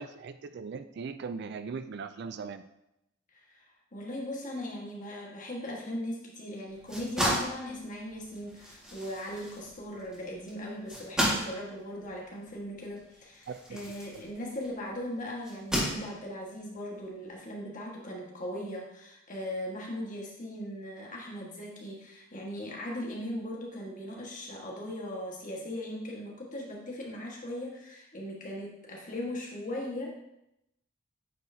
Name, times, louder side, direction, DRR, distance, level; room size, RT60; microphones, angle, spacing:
voice 1, 0.0-2.6 13.5-13.6, right 5 dB, 60° right, 10 dB, 0.4 m, -39 dB
voice 2, 3.3-3.6 3.9-30.3, left 1 dB, 45° left, -2 dB, 1.5 m, -39 dB
sound 1, 6.7-14.8 15.4-16.5, equal, 5° right, 1.9 m, -34 dB
9.1 x 4.6 x 2.8 m, 0.85 s
head